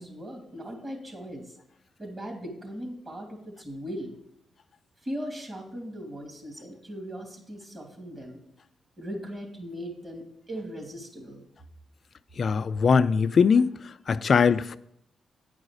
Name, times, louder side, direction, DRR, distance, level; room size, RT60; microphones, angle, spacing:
voice 1, 0.0-1.6 2.0-4.1 5.0-8.4 9.0-11.5, equal, 35° right, 2.7 m, -38 dB
voice 2, 12.4-13.7 14.1-14.8, left 5 dB, 55° left, 0.4 m, -21 dB
9.4 x 4.9 x 6.5 m
cardioid pair, 75°, 0 cm